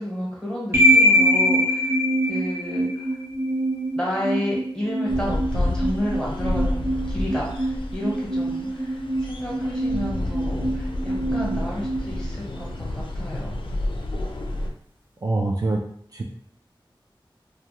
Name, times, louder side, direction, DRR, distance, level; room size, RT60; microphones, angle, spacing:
voice 1, 0.0-3.2 3.9-13.6, equal, 10° left, -5 dB, 1.0 m, -31 dB
sound 1, 0.7-12.8, equal, 25° right, 0.8 m, -24 dB
sound 2, 5.1-14.7, left 1 dB, 75° left, 0.3 m, -30 dB
voice 2, 15.2-15.8 16.1-16.2, right 2 dB, 45° right, -1 dB, 0.3 m, -24 dB
2.3 x 2.2 x 2.9 m, 0.64 s
wide cardioid pair, 55°, 9 cm